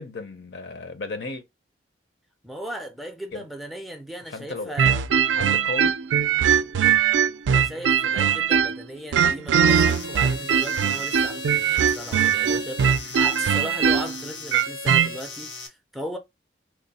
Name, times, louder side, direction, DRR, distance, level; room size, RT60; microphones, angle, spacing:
voice 1, 0.0-1.4 3.3-3.5 4.3-4.9 5.3-6.0, left 2 dB, 65° left, 0.6 m, -34 dB
voice 2, 2.4-5.0 7.5-16.2, equal, ahead, 0.3 m, -37 dB
sound 1, 4.8-8.8 9.1-15.1, right 7 dB, 85° right, 0.3 m, -21 dB
sound 2, 9.7-15.7, left 3 dB, 80° left, 1.0 m, -37 dB
3.2 x 2.0 x 4.0 m
head